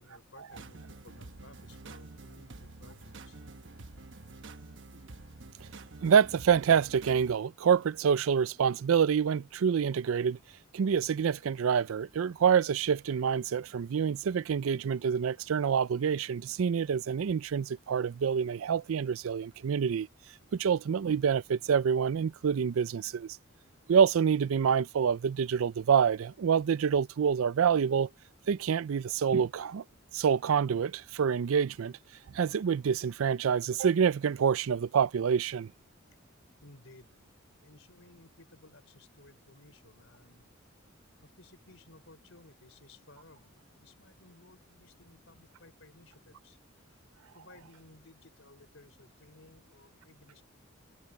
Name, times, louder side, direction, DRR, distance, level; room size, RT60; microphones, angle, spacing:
voice 1, 0.0-3.4 36.6-37.2 37.6-40.5 41.2-46.6 46.8-47.0 47.3-50.4, left 2 dB, 70° left, 5.3 m, -58 dB
sound 1, 0.5-7.4, right 3 dB, 60° right, 1.1 m, -48 dB
voice 2, 6.0-10.4 10.7-20.1 20.5-23.4 23.9-28.1 28.5-29.8 30.1-32.0 32.3-35.7, right 7 dB, 80° right, 0.4 m, -27 dB
head